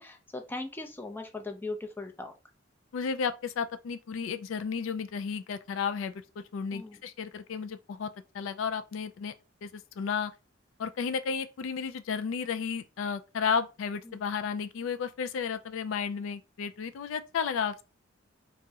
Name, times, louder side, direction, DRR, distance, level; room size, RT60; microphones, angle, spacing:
voice 1, 0.0-2.3 6.7-7.0 14.1-14.2, left 2 dB, 10° left, 0.4 m, -39 dB
voice 2, 2.9-8.1 8.3-9.3 9.6-10.3 10.8-17.8, left 6 dB, 85° left, 0.3 m, -33 dB
3.5 x 2.0 x 2.7 m
head